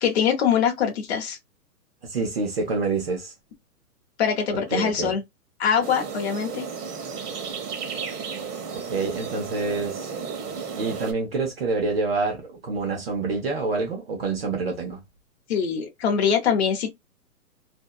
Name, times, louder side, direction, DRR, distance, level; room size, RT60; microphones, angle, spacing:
voice 1, 0.0-1.4 4.2-5.2 5.6-6.6 15.5-16.9, left 7 dB, 45° left, 0.7 m, -23 dB
voice 2, 2.0-3.3 4.7-5.1 8.7-10.1 10.8-15.0, right 4 dB, 40° right, 0.7 m, -27 dB
sound 1, 5.8-11.1, right 6 dB, 80° right, 1.0 m, -33 dB
2.6 x 2.1 x 2.2 m
hypercardioid pair, 165°, 46 cm